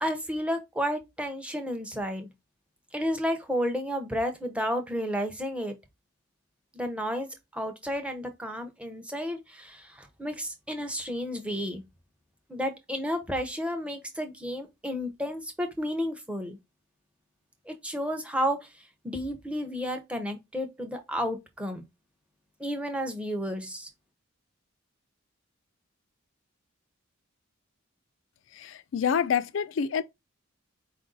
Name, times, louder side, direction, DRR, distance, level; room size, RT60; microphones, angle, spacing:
voice 1, 0.0-2.3 2.9-5.7 6.7-11.8 12.5-16.6 17.7-18.7 19.0-21.8 22.6-23.9, equal, 5° right, 0.6 m, -32 dB
voice 2, 28.5-30.0, left 7 dB, 60° left, 0.3 m, -27 dB
4.6 x 2.5 x 3.8 m
head